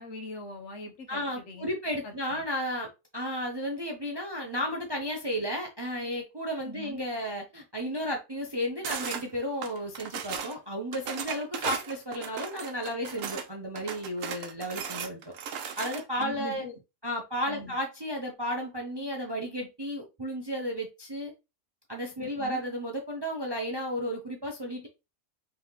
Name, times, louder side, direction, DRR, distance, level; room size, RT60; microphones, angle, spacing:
voice 1, 0.0-1.7 2.0-2.4 6.6-7.1 16.2-16.8 17.5-17.7 22.2-22.6, left 2 dB, 65° left, 1.2 m, -42 dB
voice 2, 1.1-15.3 15.8-16.7 17.0-21.3 21.9-24.9, equal, 30° right, 0.5 m, -33 dB
sound 1, 8.8-9.2 9.6-10.6 10.9-13.5 13.8-16.3, right 7 dB, 90° right, 1.0 m, -36 dB
3.7 x 3.4 x 3.0 m
omnidirectional pair, 1.3 m